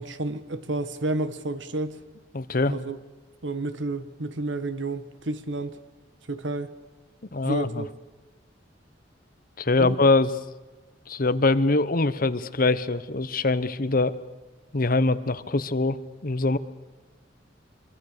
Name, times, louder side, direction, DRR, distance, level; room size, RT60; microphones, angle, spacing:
voice 1, 0.0-2.0 2.7-3.0 3.4-5.8 6.3-6.7 7.4-7.9 9.8-10.0, right 2 dB, 80° right, 1.6 m, -30 dB
voice 2, 2.3-2.7 7.3-7.8 9.6-10.3 11.1-14.2 14.7-16.6, left 3 dB, 50° left, 1.0 m, -23 dB
25.5 x 24.0 x 6.8 m
head